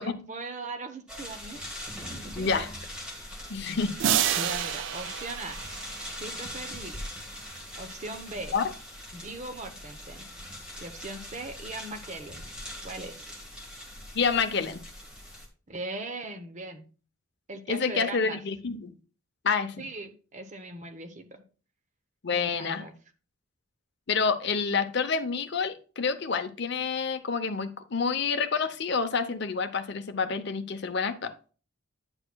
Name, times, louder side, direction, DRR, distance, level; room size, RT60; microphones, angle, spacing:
voice 1, 0.0-1.6 2.2-2.7 4.4-5.6 6.2-7.0 7.7-8.6 9.1-10.3 10.8-12.5 12.8-13.4 15.7-16.8 17.5-18.4 19.8-21.3 22.3-22.9, right 2 dB, 35° right, 8 dB, 0.8 m, -39 dB
sound 1, 1.1-15.5, left 1 dB, 5° right, 1.5 m, -41 dB
voice 2, 2.4-2.7 3.5-4.3 8.5-8.6 14.1-14.8 17.7-18.9 19.4-19.8 22.2-22.8 24.1-31.3, left 5 dB, 50° left, 9 dB, 0.6 m, -28 dB
sound 2, 4.0-6.8, right 10 dB, 60° right, 0.4 m, -29 dB
9.7 x 6.5 x 2.2 m, 0.38 s
head